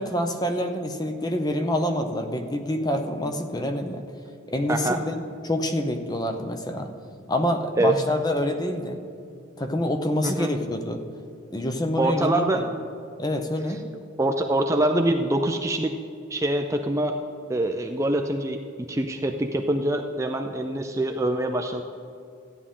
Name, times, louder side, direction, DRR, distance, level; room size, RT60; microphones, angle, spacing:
voice 1, 0.0-4.0 4.5-6.9 7.3-9.0 9.6-11.0 11.5-12.7 13.2-13.8, left 1 dB, 20° left, 6 dB, 0.7 m, -27 dB
voice 2, 12.0-12.6 13.7-13.8 14.2-15.9 16.3-17.2 17.5-18.6 18.9-21.8, right 1 dB, 15° right, 4 dB, 0.4 m, -24 dB
14.5 x 9.8 x 3.7 m, 2.5 s
head